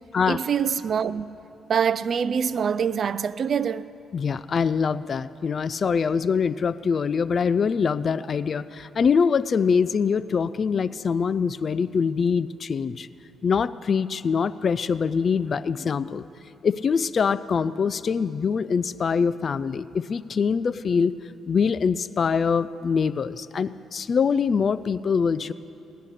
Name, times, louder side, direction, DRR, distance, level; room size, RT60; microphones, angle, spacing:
voice 1, 0.3-1.3 1.7-3.9, right 7 dB, 50° right, 0.4 m, -24 dB
voice 2, 4.1-13.1 13.4-16.3 16.6-21.1 21.5-25.5, left 6 dB, 45° left, 0.3 m, -24 dB
18.0 x 10.0 x 6.6 m
cardioid pair, 90°, 0 cm